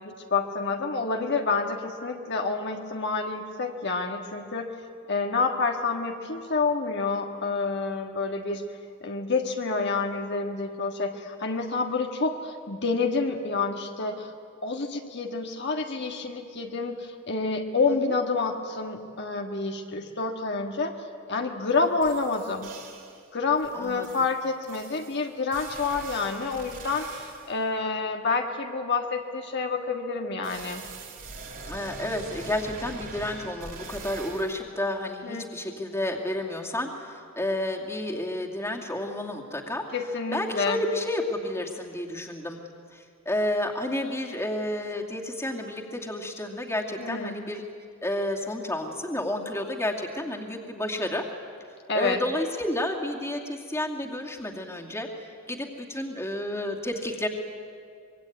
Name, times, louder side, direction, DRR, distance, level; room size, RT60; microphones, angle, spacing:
voice 1, 0.0-4.7 5.1-8.6 9.0-14.3 14.6-20.9 21.3-22.7 23.3-30.8 35.2-35.5 39.9-40.8 47.0-47.4 51.9-52.2, left 4 dB, 55° left, 3 dB, 1.7 m, -28 dB
sound 1, 21.7-21.8 22.0-23.2 23.6-27.6 30.4-34.6, right 3 dB, 45° right, 4.4 m, -42 dB
voice 2, 23.7-24.1 31.7-39.8 40.3-42.6 42.9-47.6 48.0-51.3 51.9-57.3, left 1 dB, 15° left, 1 dB, 2.6 m, -31 dB
25.0 x 22.5 x 9.5 m, 2.3 s
head